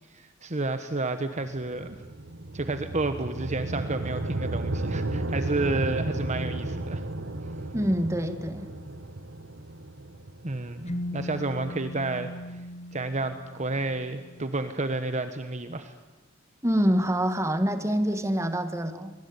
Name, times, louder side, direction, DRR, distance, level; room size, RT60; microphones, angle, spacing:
voice 1, 0.1-2.0 2.5-7.0 10.4-12.3 12.9-15.9, right 2 dB, 35° right, 9 dB, 1.2 m, -30 dB
sound 1, 1.5-11.7, right 2 dB, 65° right, 1.4 m, -34 dB
voice 2, 7.7-8.7 16.6-19.1, equal, 15° right, 8 dB, 1.9 m, -26 dB
sound 2, 10.9-14.7, left 1 dB, 35° left, 1.8 m, -39 dB
24.5 x 22.5 x 9.7 m, 1.2 s
head